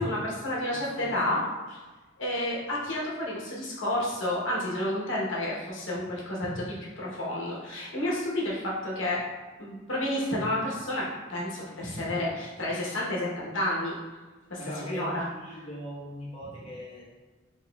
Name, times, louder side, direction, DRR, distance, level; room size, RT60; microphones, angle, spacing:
voice 1, 0.0-1.8 2.2-9.2 9.6-14.0 14.5-15.2, left 1 dB, 85° left, -5 dB, 1.0 m, -30 dB
voice 2, 14.6-17.1, equal, 30° left, -8 dB, 1.1 m, -39 dB
4.8 x 2.9 x 2.3 m, 1.3 s
head